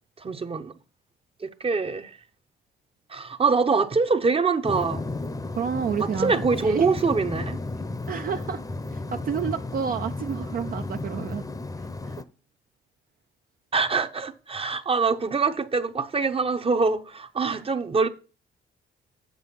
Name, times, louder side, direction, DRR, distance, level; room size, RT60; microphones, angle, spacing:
voice 1, 0.2-0.7 1.4-2.2 3.1-5.0 6.0-7.6 13.7-18.1, right 4 dB, 30° right, 0.8 m, -24 dB
sound 1, 4.6-12.2, left 2 dB, 15° left, 0.7 m, -33 dB
voice 2, 5.5-6.3 6.6-6.9 8.1-8.6 8.9-11.4 12.0-12.2 17.4-17.6, right 7 dB, 50° right, 0.5 m, -30 dB
7.2 x 6.3 x 5.5 m
cardioid pair, 90°, 20 cm